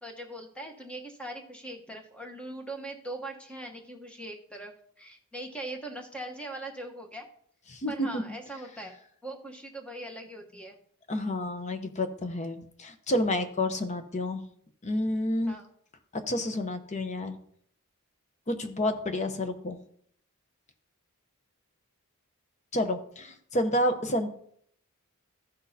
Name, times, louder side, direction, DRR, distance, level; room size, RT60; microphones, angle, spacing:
voice 1, 0.0-7.3 7.9-10.8 15.5-15.7, right 1 dB, 5° left, 2 dB, 1.0 m, -41 dB
voice 2, 7.7-8.2 11.1-14.4 14.8-15.5 16.1-17.4 18.5-19.8 22.7-24.3, left 1 dB, 30° left, 8 dB, 0.8 m, -29 dB
14.5 x 6.2 x 2.8 m, 0.64 s
head